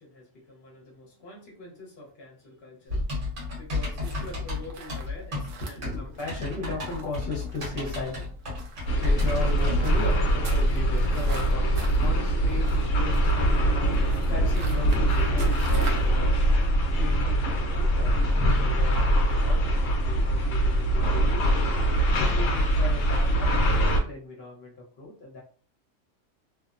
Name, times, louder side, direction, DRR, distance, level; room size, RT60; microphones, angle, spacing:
voice 1, 0.0-2.9 3.6-8.3 8.6-8.7 9.0-13.8 14.3-16.3 17.0-21.5 22.2-25.4, left 2 dB, 55° left, -2 dB, 1.1 m, -38 dB
Typing, 2.9-9.9, left 3 dB, 65° right, 1.3 m, -33 dB
sound 1, 4.0-16.2, right 4 dB, 80° right, 0.9 m, -45 dB
sound 2, 8.9-24.0, right 1 dB, 80° left, 1.0 m, -23 dB
2.9 x 2.0 x 2.4 m, 0.41 s
omnidirectional pair, 1.3 m